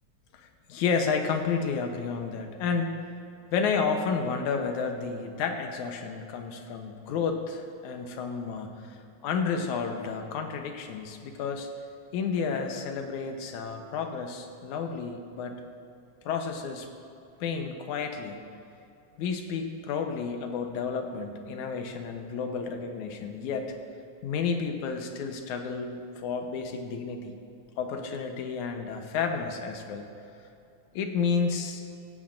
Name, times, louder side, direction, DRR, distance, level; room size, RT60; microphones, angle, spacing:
voice 1, 0.3-3.1 3.5-9.0 9.2-11.7 12.1-15.6 16.3-16.9 17.4-18.5 19.2-23.7 24.2-27.4 27.8-30.1 30.9-31.8, left 5 dB, 85° left, 4 dB, 2.4 m, -31 dB
16.0 x 15.0 x 2.6 m, 2.7 s
omnidirectional pair, 3.3 m